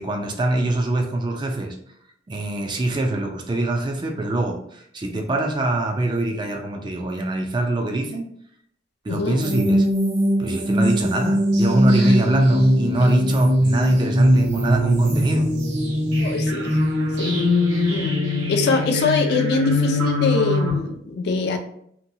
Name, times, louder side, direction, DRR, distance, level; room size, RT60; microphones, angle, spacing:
voice 1, 0.0-1.8 2.3-8.3 9.0-9.9 10.4-15.5, right 2 dB, 25° right, 3 dB, 0.3 m, -24 dB
voice 2, 9.1-9.5 16.2-16.8 17.1-17.4 17.9-18.1 18.5-21.6, left 3 dB, 60° left, 5 dB, 0.4 m, -23 dB
sound 1, 9.4-20.7, left 1 dB, 70° right, 0.8 m, -20 dB
2.9 x 2.2 x 2.6 m, 0.68 s
head